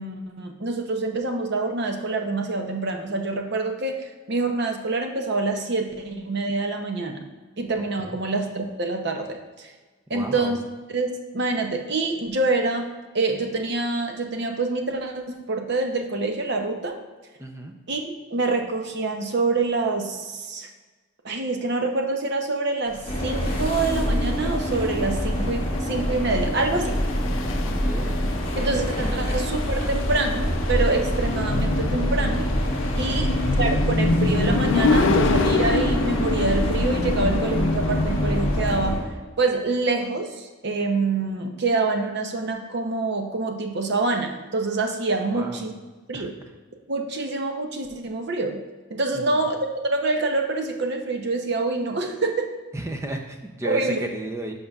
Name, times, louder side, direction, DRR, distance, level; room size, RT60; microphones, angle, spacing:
voice 1, 0.0-7.2 7.6-9.7 10.1-10.6 10.9-17.0 17.9-20.7 21.2-26.9 28.6-32.5 33.0-33.3 33.6-39.0 39.4-45.7 46.1-46.3 46.9-48.6 48.9-52.5 53.6-54.0, right 3 dB, 50° right, 4 dB, 0.7 m, -26 dB
voice 2, 10.1-10.5 17.4-17.7 27.6-28.2 45.3-45.7 46.1-46.3 49.1-49.2 52.7-54.5, right 1 dB, 15° right, 4 dB, 0.5 m, -34 dB
sound 1, 22.9-38.8, left 3 dB, 60° left, 0.5 m, -27 dB
sound 2, 23.1-39.0, equal, 25° left, 1.3 m, -26 dB
10.5 x 5.4 x 2.4 m, 1.3 s
head